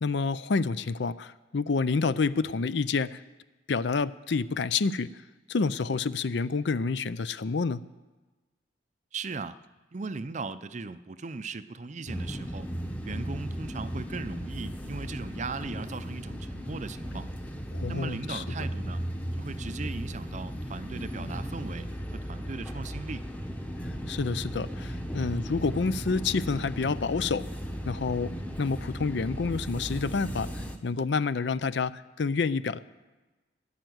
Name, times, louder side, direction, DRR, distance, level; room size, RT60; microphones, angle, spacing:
voice 1, 0.0-3.2 3.7-5.1 5.5-7.8 17.7-18.4 24.1-27.4 27.9-28.3 28.6-32.8, left 4 dB, 65° left, 16 dB, 0.5 m, -28 dB
voice 2, 9.1-9.6 9.9-12.7 13.0-17.3 17.9-19.0 19.4-23.2, right 4 dB, 40° right, 13 dB, 0.5 m, -38 dB
sound 1, 12.1-30.8, equal, 10° left, 1.0 m, -36 dB
15.0 x 10.5 x 7.9 m, 1.2 s
head